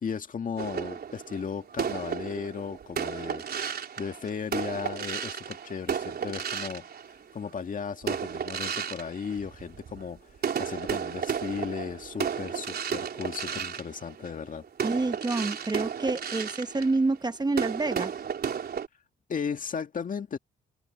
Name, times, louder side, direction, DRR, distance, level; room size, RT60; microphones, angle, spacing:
voice 1, 0.0-6.9 7.3-14.6 19.3-20.4, left 6 dB, 40° left, 2.0 m, -36 dB
sound 1, 0.6-7.5 8.0-10.0 10.4-18.9, right 7 dB, 55° right, 4.3 m, -33 dB
voice 2, 14.8-18.1, right 3 dB, 20° right, 1.2 m, -28 dB
cardioid pair, 90°, 20 cm